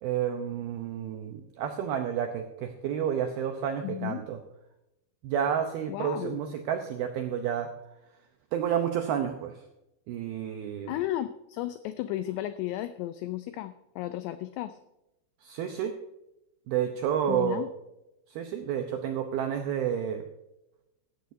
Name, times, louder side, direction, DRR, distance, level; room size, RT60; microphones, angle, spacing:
voice 1, 0.0-4.4 5.2-7.7 8.5-9.6 10.1-10.9 15.4-16.0 16.7-17.6 18.3-20.2, right 9 dB, 85° right, 5 dB, 2.2 m, -30 dB
voice 2, 3.8-4.2 5.9-6.4 10.9-14.8 17.3-17.7, left 14 dB, 90° left, 12 dB, 2.4 m, -34 dB
15.5 x 12.5 x 2.7 m, 0.90 s
omnidirectional pair, 5.5 m